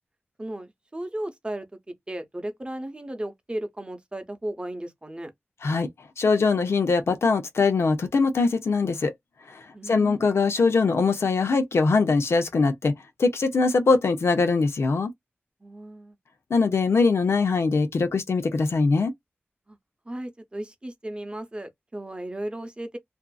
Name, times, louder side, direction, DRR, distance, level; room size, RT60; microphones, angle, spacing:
voice 1, 0.4-1.7 2.1-5.3 9.7-10.2 15.6-16.2 19.7-19.8 20.1-23.0, right 1 dB, 25° right, 0.8 m, -35 dB
voice 2, 6.2-9.1 9.5-12.9 13.2-15.1 16.5-19.1, left 4 dB, 90° left, 0.6 m, -22 dB
2.6 x 2.4 x 2.3 m
wide cardioid pair, 70°, 4 cm